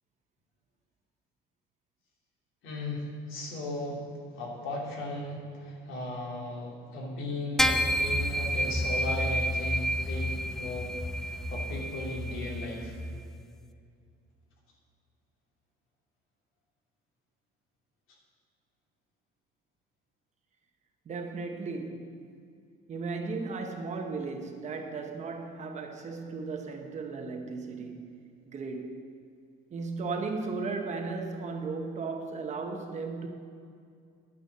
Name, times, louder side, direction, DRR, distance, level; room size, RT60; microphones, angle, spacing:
voice 1, 2.6-4.1 4.3-10.9 11.2-12.9, left 1 dB, 70° left, 2.9 m, -36 dB
sound 1, 7.6-13.2, equal, ahead, 0.3 m, -30 dB
voice 2, 21.1-22.2 22.9-28.2 28.5-29.0 29.7-33.3, right 4 dB, 35° right, 1.0 m, -36 dB
11.0 x 9.4 x 6.6 m
cardioid pair, 165°, 21 cm